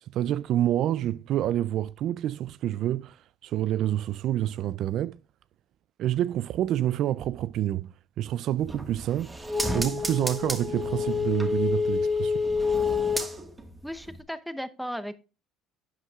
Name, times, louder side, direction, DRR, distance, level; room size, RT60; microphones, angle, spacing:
voice 1, 0.0-5.2 6.0-9.4 9.7-12.3, right 12 dB, 55° right, 0.3 m, -28 dB
sound 1, 8.6-13.7 14.1-14.2, left 4 dB, 15° right, 1.5 m, -28 dB
voice 2, 13.8-15.1, equal, ahead, 0.8 m, -35 dB
11.5 x 8.2 x 2.3 m
cardioid pair, 110°, 0 cm